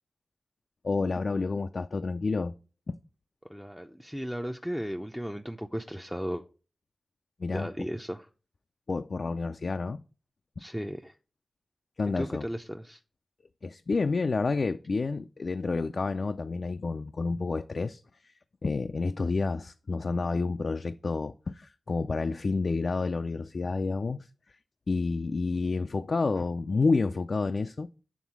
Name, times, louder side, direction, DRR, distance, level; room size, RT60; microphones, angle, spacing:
voice 1, 0.8-2.5 2.9-3.0 7.4-7.7 8.9-10.0 12.0-12.5 13.6-18.0 18.6-24.3 24.9-27.9, left 3 dB, 60° left, 0.3 m, -29 dB
voice 2, 3.5-6.4 7.5-8.3 10.6-11.2 12.2-13.0, equal, ahead, 0.5 m, -35 dB
7.2 x 3.7 x 5.9 m
cardioid pair, 45°, 0 cm